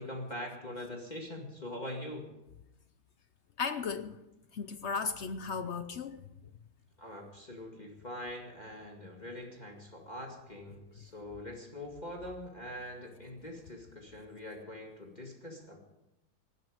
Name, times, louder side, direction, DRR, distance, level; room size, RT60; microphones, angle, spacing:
voice 1, 0.0-2.3 7.0-15.8, left 1 dB, 25° left, 2.1 m, -43 dB
voice 2, 3.6-4.2 4.5-6.2, left 5 dB, 65° left, 0.7 m, -35 dB
19.0 x 12.0 x 5.1 m
omnidirectional pair, 2.0 m